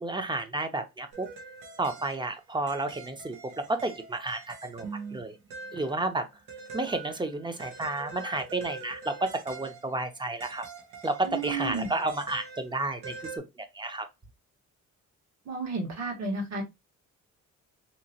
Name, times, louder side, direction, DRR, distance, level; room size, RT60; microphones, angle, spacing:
voice 1, 0.0-1.3 1.8-5.4 5.7-6.3 6.7-10.6 11.0-14.1, right 2 dB, 15° right, 0.7 m, -31 dB
sound 1, 1.1-13.4, right 4 dB, 85° right, 1.1 m, -44 dB
voice 2, 11.2-11.9 15.4-16.6, right 3 dB, 60° right, 1.5 m, -32 dB
3.0 x 3.0 x 2.8 m
cardioid pair, 90°, 30 cm